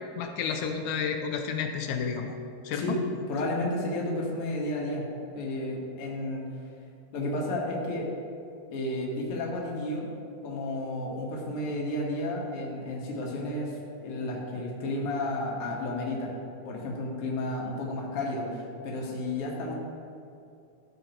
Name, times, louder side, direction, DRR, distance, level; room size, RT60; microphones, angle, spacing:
voice 1, 0.2-2.3 2.6-3.0, left 6 dB, 85° left, 4 dB, 2.2 m, -31 dB
voice 2, 2.7-6.5 7.1-8.1 8.7-10.1 10.4-16.3 16.7-19.7, left 1 dB, 55° left, -2 dB, 1.9 m, -32 dB
14.0 x 6.5 x 3.0 m, 2.5 s
omnidirectional pair, 3.7 m